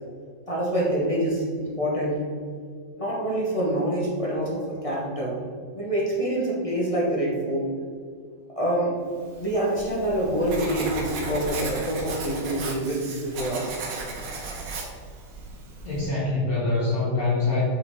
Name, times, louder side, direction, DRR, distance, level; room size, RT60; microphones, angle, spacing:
voice 1, 0.5-2.2 3.0-5.3 5.7-7.7 8.6-8.9 9.4-13.7, right 1 dB, 25° left, -5 dB, 0.8 m, -26 dB
Writing, 9.4-16.1, right 3 dB, 70° right, 1.6 m, -35 dB
voice 2, 15.8-17.6, left 3 dB, 50° left, -7 dB, 1.5 m, -24 dB
5.6 x 5.0 x 3.6 m, 2.1 s
omnidirectional pair, 2.1 m